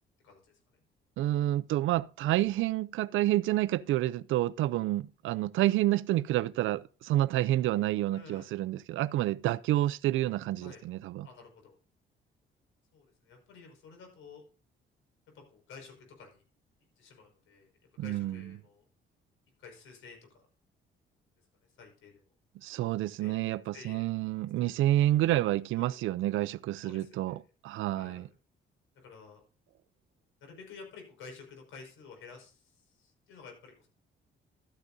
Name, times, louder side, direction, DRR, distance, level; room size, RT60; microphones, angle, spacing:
voice 1, 0.2-0.8 8.1-8.5 10.6-10.8 11.2-11.8 12.9-14.4 15.3-16.4 17.0-17.7 18.0-18.8 19.6-20.4 21.8-22.2 23.2-24.1 24.6-24.8 25.7-26.0 26.8-27.4 27.9-28.3 28.9-29.4 30.4-33.9, left 5 dB, 85° left, 5.4 m, -52 dB
voice 2, 1.2-11.3 18.0-18.4 22.6-28.3, right 14 dB, 80° right, 0.5 m, -29 dB
13.5 x 9.8 x 2.7 m
cardioid pair, 90°, 20 cm